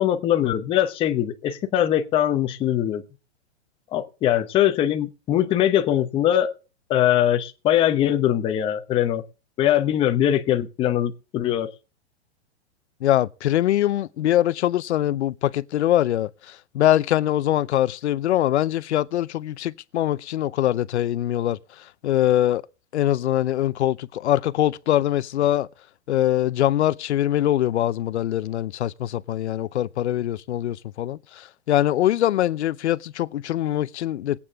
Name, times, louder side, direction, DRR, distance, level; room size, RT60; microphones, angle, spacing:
voice 1, 0.0-3.0 3.9-6.5 6.9-9.2 9.6-11.7, left 11 dB, 15° left, 0.7 m, -21 dB
voice 2, 13.0-21.6 22.0-22.6 22.9-25.7 26.1-34.4, left 12 dB, 75° left, 0.7 m, -23 dB
20.5 x 8.5 x 3.6 m
hypercardioid pair, 155°, 34 cm